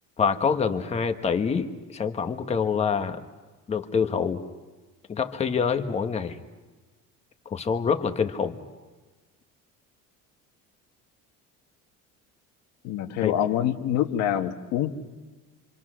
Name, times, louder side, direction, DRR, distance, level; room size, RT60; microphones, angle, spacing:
voice 1, 0.2-3.2 3.7-4.4 5.1-6.4 7.5-8.6 13.2-13.3, left 6 dB, 20° left, 7 dB, 1.2 m, -26 dB
voice 2, 12.8-14.9, left 11 dB, 65° left, 7 dB, 1.6 m, -26 dB
27.5 x 25.5 x 6.3 m, 1.3 s
cardioid pair, 175°, 30 cm